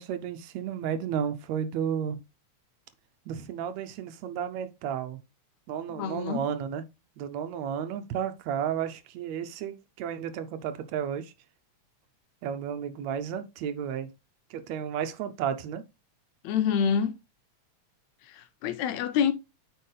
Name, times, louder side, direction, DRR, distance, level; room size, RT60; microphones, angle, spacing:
voice 1, 0.0-2.2 3.3-5.2 5.7-6.8 7.2-11.3 12.4-14.1 14.5-15.8, right 8 dB, 75° right, 1.9 m, -32 dB
voice 2, 6.0-6.5 16.4-17.1 18.3-19.3, left 7 dB, 80° left, 2.0 m, -27 dB
9.0 x 4.5 x 3.3 m
omnidirectional pair, 3.3 m